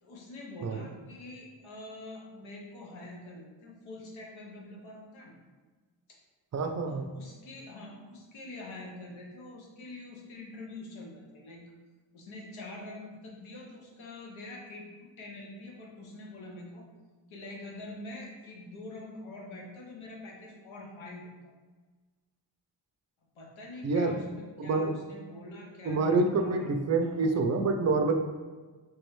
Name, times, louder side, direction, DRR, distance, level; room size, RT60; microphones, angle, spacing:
voice 1, 0.0-5.4 6.9-11.6 12.1-16.9 17.3-21.3 23.4-26.7 27.0-27.3, left 2 dB, 80° left, -1 dB, 1.0 m, -45 dB
voice 2, 6.5-7.1 23.8-24.1 24.6-24.9 25.8-28.1, right 3 dB, 35° right, 5 dB, 0.4 m, -27 dB
3.4 x 3.1 x 3.0 m, 1.4 s
cardioid pair, 80°, 47 cm